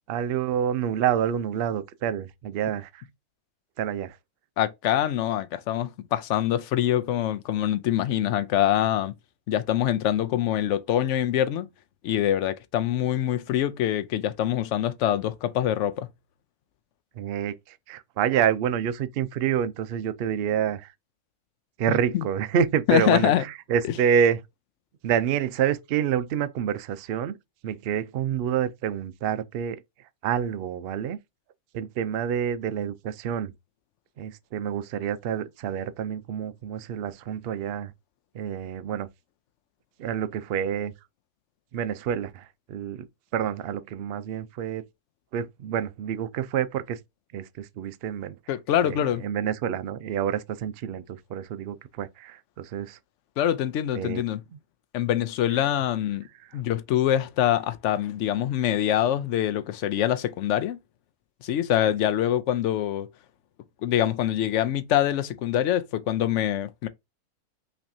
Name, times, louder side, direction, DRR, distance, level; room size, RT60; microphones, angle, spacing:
voice 1, 0.1-3.0 3.8-4.2 17.2-20.9 21.8-23.3 23.7-24.4 25.0-27.3 27.6-29.8 30.2-31.2 31.7-33.5 34.2-37.9 38.3-39.1 40.0-40.9 41.7-43.1 43.3-44.8 45.3-47.0 47.3-48.4 48.8-53.0 54.0-54.2, right 9 dB, 80° right, 0.5 m, -28 dB
voice 2, 4.6-9.1 9.5-11.7 12.0-16.1 21.9-22.2 22.9-23.4 48.5-49.3 53.4-54.4 54.9-56.2 56.5-60.8 61.4-63.1 63.8-66.9, left 11 dB, 65° left, 0.8 m, -24 dB
5.7 x 3.2 x 2.7 m
omnidirectional pair, 1.6 m